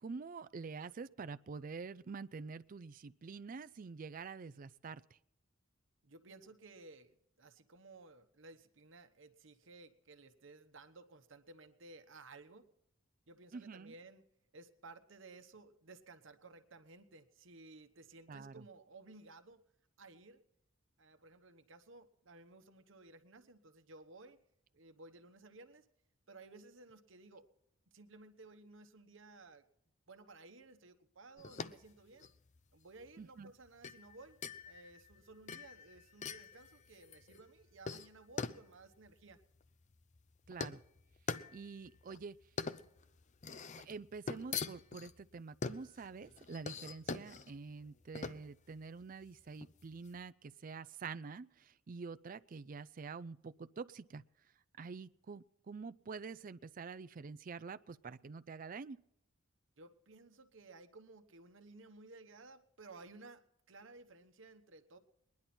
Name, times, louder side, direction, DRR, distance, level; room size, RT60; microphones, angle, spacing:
voice 1, 0.0-5.0 13.5-13.9 18.3-18.6 33.2-33.5 40.5-40.8 41.5-42.4 43.8-54.2 54.8-59.0, right 4 dB, 40° right, 13 dB, 0.4 m, -47 dB
voice 2, 6.0-12.6 13.3-14.2 14.5-19.6 20.0-20.4 21.0-24.4 24.7-25.8 26.3-27.5 27.9-29.6 30.1-32.3 32.7-34.4 34.7-39.4 59.8-63.4 63.7-65.0, right 3 dB, 65° right, 8 dB, 1.1 m, -57 dB
sound 1, 31.4-50.2, left 5 dB, 35° left, 0.5 m, -45 dB
21.0 x 10.5 x 4.3 m, 0.79 s
head